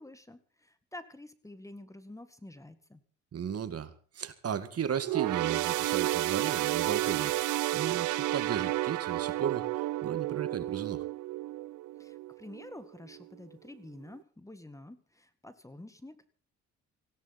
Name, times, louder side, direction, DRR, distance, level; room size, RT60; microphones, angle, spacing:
voice 1, 0.0-3.0 12.0-16.3, left 1 dB, 10° left, 12 dB, 1.9 m, -49 dB
voice 2, 3.3-11.0, right 8 dB, 50° right, 11 dB, 2.0 m, -35 dB
sound 1, 5.0-12.7 13.1-13.3 14.2-14.3, right 17 dB, 80° right, 0.7 m, -31 dB
18.5 x 16.5 x 4.2 m, 0.39 s
cardioid pair, 90°, 30 cm